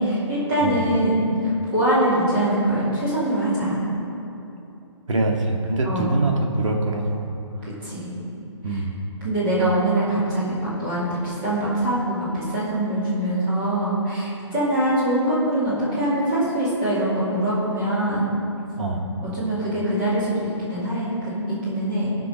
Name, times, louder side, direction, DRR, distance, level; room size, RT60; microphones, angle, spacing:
voice 1, 0.0-3.8 5.8-6.2 7.8-8.2 8.7-8.8 9.2-18.3 19.2-22.1, right 1 dB, 10° right, -9 dB, 2.4 m, -23 dB
voice 2, 5.1-7.3 8.6-9.0 18.8-19.0, right 2 dB, 85° right, 0 dB, 2.0 m, -24 dB
17.0 x 6.0 x 5.1 m, 2.9 s
hypercardioid pair, 180°, 16 cm